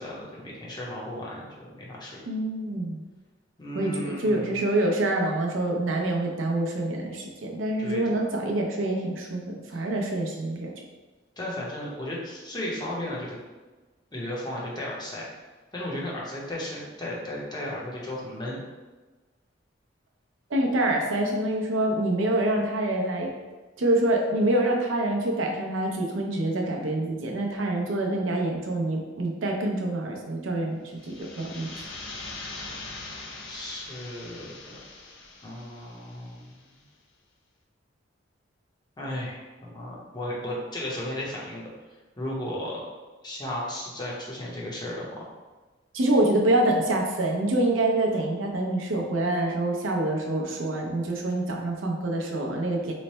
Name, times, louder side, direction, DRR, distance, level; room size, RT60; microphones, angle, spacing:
voice 1, 0.0-2.3 3.6-4.6 7.8-8.2 9.7-9.8 11.4-13.4 14.1-15.2 15.7-18.6 33.4-34.8 35.4-36.7 39.0-41.7 42.2-42.8 43.2-45.2, left 1 dB, 25° left, -5 dB, 0.8 m, -35 dB
voice 2, 2.3-3.0 3.7-10.7 20.5-23.3 23.8-31.9 45.9-52.9, right 1 dB, 80° right, 1 dB, 0.6 m, -26 dB
sound 1, 30.9-36.6, left 3 dB, 80° left, 0.5 m, -42 dB
3.1 x 2.1 x 4.1 m, 1.3 s
head